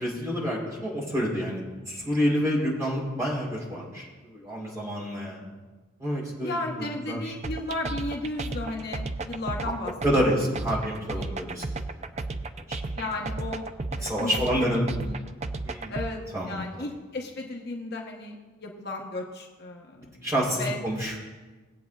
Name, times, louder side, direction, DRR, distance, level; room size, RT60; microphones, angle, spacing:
voice 1, 0.0-5.4 6.0-7.2 10.0-11.6 12.7-13.0 14.0-14.9 15.6-15.9 16.3-16.9 20.0-21.1, equal, 15° right, -4 dB, 3.4 m, -28 dB
voice 2, 6.4-10.3 11.1-11.3 13.0-13.6 14.0-14.3 14.6-15.2 15.9-16.2 16.5-18.3 18.6-20.3 20.6-20.8, left 2 dB, 50° left, 0 dB, 1.0 m, -34 dB
sound 1, 7.4-16.1, right 3 dB, 30° right, 0.4 m, -33 dB
20.0 x 8.3 x 2.4 m, 1.3 s
head